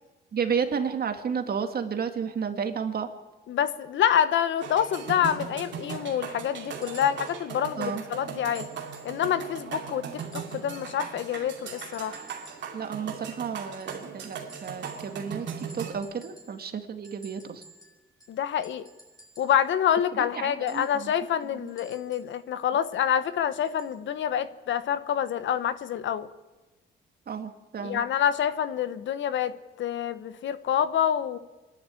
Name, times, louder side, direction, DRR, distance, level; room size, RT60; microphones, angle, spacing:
voice 1, 0.3-3.1 7.8-8.0 12.7-17.6 20.1-21.1 21.5-21.7 27.3-28.0, right 6 dB, 50° right, 6 dB, 2.2 m, -32 dB
voice 2, 3.5-8.7 9.0-12.2 18.3-18.8 19.4-26.3 27.8-31.4, left 9 dB, 70° left, 14 dB, 1.1 m, -27 dB
sound 1, 4.6-15.9, right 6 dB, 65° right, 2.7 m, -38 dB
sound 2, 6.8-7.4 8.5-9.2 10.2-10.7 11.7-12.8 13.8-15.3 15.6-16.7 17.0-19.6 20.7-22.4 23.6-24.0 24.9-25.0, right 1 dB, 20° left, 6.9 m, -52 dB
26.0 x 12.0 x 9.0 m, 1.2 s
cardioid pair, 90°, 20 cm